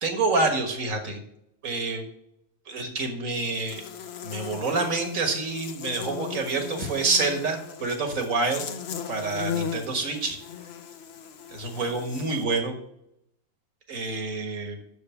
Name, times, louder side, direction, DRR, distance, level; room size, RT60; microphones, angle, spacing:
voice 1, 0.0-1.2 1.6-2.0 2.7-3.8 4.2-8.6 9.1-10.4 11.5-12.7 13.9-14.8, right 3 dB, 75° right, 4 dB, 1.9 m, -27 dB
Buzz, 3.4-12.4, left 8 dB, 55° left, 0.9 m, -37 dB
6.8 x 6.6 x 7.0 m, 0.78 s
omnidirectional pair, 1.4 m